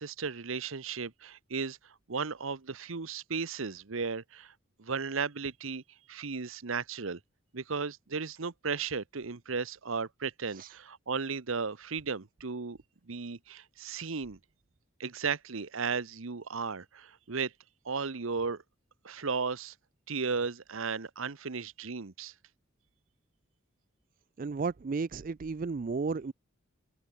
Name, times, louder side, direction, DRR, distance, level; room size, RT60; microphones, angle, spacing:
voice 1, 0.0-1.8 2.1-4.5 4.8-5.8 6.1-7.2 7.5-12.8 13.1-14.4 15.0-17.5 17.8-18.6 19.0-19.7 20.1-22.3, right 5 dB, 70° right, 0.9 m, -35 dB
voice 2, 24.4-26.3, right 4 dB, 40° right, 0.4 m, -33 dB
head